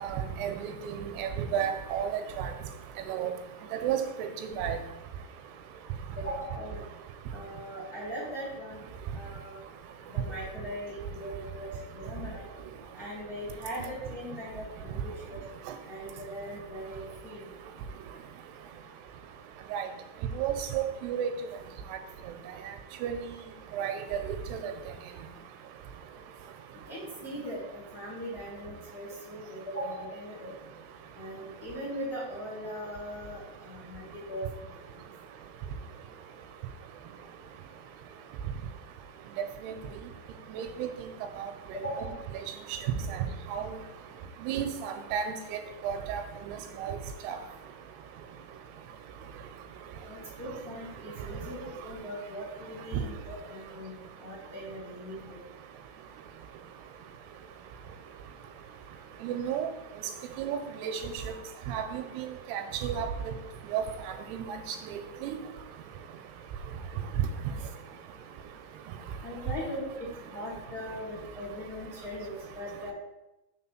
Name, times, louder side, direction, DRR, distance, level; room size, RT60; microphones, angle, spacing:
voice 1, 0.0-2.5 3.1-3.3 3.7-4.8 19.7-19.9 20.4-21.3 23.0-23.2 23.7-24.2 24.5-24.7 39.6-39.7 40.5-40.9 43.1-43.2 43.5-43.7 44.4-45.3 45.8-46.2 46.8-47.0 47.2-47.4 59.2-59.7 60.4-61.0 61.7-63.1 63.7-63.8 64.3-64.5 65.2-65.4, right 9 dB, 90° right, 7 dB, 2.7 m, -32 dB
voice 2, 6.2-6.8 7.3-8.8 9.1-9.6 10.1-12.5 12.9-15.4 15.8-17.5 26.9-30.5 31.2-35.1 41.7-42.1 50.1-53.9 54.2-55.4 69.2-72.9, equal, 80° left, -7 dB, 0.8 m, -40 dB
6.1 x 4.0 x 5.9 m, 0.98 s
omnidirectional pair, 4.7 m